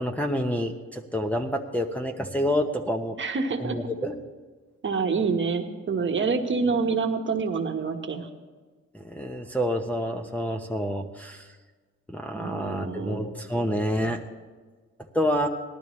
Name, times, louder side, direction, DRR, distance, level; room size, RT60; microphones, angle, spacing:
voice 1, 0.0-3.2 3.6-4.2 8.9-11.5 12.1-14.2 15.1-15.5, equal, 5° left, 0 dB, 0.8 m, -28 dB
voice 2, 3.2-3.8 4.8-8.3 12.3-13.3, right 4 dB, 40° right, 4 dB, 1.3 m, -27 dB
18.0 x 12.5 x 3.2 m, 1.4 s
cardioid pair, 90°, 30 cm